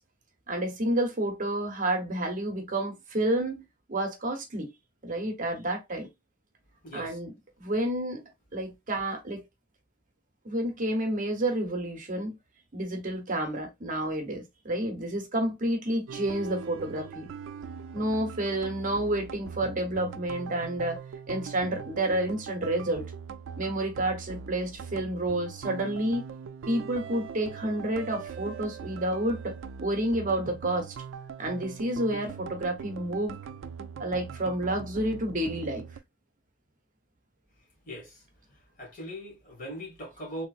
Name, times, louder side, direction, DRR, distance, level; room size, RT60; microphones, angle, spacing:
voice 1, 0.5-4.7 5.0-6.1 6.9-7.3 7.6-8.2 8.5-9.4 10.4-12.4 12.7-17.3 17.9-21.0 21.3-23.1 23.6-26.3 26.7-29.5 29.8-30.9 31.4-33.4 34.0-35.8, right 1 dB, 45° right, 0.9 m, -30 dB
voice 2, 6.8-7.2 37.9-38.2 38.8-40.5, equal, 45° left, 1.5 m, -40 dB
sound 1, 16.1-36.0, right 6 dB, 75° right, 0.3 m, -41 dB
3.4 x 2.9 x 2.4 m
head